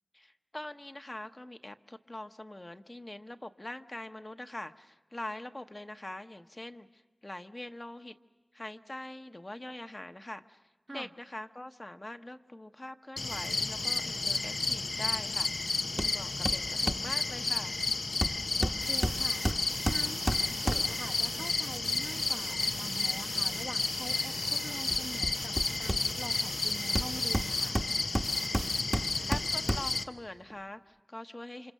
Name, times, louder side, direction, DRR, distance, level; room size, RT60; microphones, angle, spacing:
voice 1, 0.1-8.2 8.5-10.6 10.9-17.8 29.3-31.7, left 1 dB, 35° left, 7 dB, 0.9 m, -43 dB
sound 1, 13.2-30.0, left 3 dB, 90° left, 0.8 m, -32 dB
Hammer, 16.0-16.2 16.5-17.1 18.2-21.1 24.9-26.4 27.0-30.1 30.5-30.6, right 1 dB, 15° right, 1.0 m, -33 dB
voice 2, 18.6-19.4 19.8-27.8, right 2 dB, 60° right, 5 dB, 1.2 m, -45 dB
sound 2, 18.8-27.7 28.2-28.8, right 3 dB, 85° right, 4.2 m, -44 dB
29.0 x 25.5 x 6.6 m, 1.1 s
cardioid pair, 40°, 0 cm